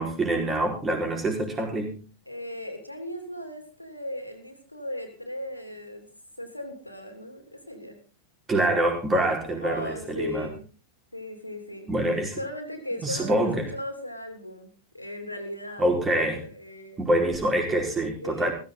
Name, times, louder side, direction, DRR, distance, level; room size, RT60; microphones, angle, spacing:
voice 1, 0.0-2.0 8.5-10.5 11.9-12.4 13.0-13.7 15.8-16.4 17.0-18.5, right 1 dB, 20° right, 2 dB, 4.9 m, -25 dB
voice 2, 2.2-6.1 6.4-8.0 9.6-10.7 11.1-11.9 12.4-15.9 16.3-17.0 18.2-18.5, left 1 dB, 85° left, 6 dB, 3.0 m, -37 dB
15.5 x 14.5 x 4.0 m, 0.34 s
figure-of-eight pair, 90°, 0 cm